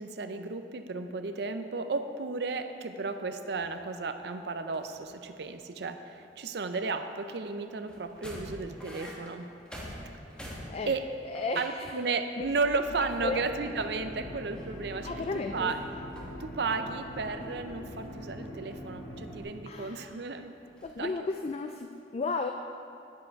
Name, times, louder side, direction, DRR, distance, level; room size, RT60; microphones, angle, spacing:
voice 1, 0.0-9.5 10.9-11.0 11.6-15.1 15.5-15.8 16.4-20.5 21.0-21.1, right 4 dB, 65° right, 8 dB, 0.5 m, -33 dB
sound 1, 3.3-4.1 4.6-5.6 5.9-7.4 7.8-11.9 12.3-12.4 12.6-13.7 14.0-15.9 16.1-17.0 17.3-18.2 18.7-20.1 20.5-20.9, equal, 5° left, 1.3 m, -48 dB
voice 2, 11.2-12.0 12.4-12.5 13.2-13.4 15.0-15.7 19.7-20.2 20.8-22.5, left 3 dB, 35° left, 5 dB, 0.3 m, -34 dB
sound 2, 12.4-17.7, equal, 50° right, 1.8 m, -50 dB
sound 3, 13.1-19.4, equal, 75° left, 2.2 m, -43 dB
9.9 x 7.8 x 4.6 m, 2.7 s
head